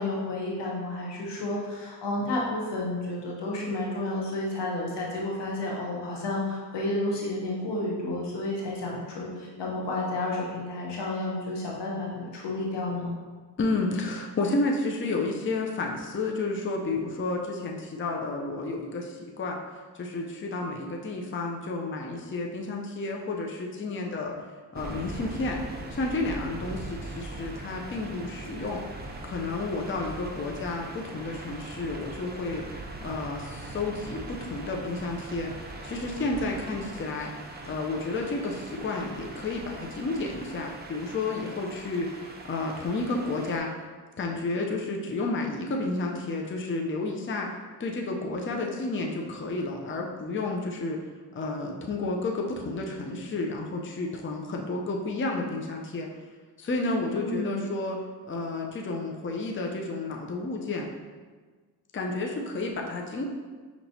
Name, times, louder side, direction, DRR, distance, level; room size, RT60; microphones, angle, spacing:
voice 1, 0.0-13.2 57.1-57.7, left 2 dB, 85° left, -3 dB, 1.0 m, -31 dB
voice 2, 13.6-19.6 19.9-24.3 24.7-25.6 25.9-28.8 29.2-37.3 37.7-42.2 42.4-43.7 44.2-47.5 47.8-51.0 51.3-56.1 56.6-60.9 61.9-63.2, left 2 dB, 30° left, 0 dB, 0.6 m, -31 dB
sound 1, 24.7-43.6, right 2 dB, 25° right, 0.6 m, -41 dB
5.7 x 2.9 x 2.7 m, 1.4 s
cardioid pair, 65°, 41 cm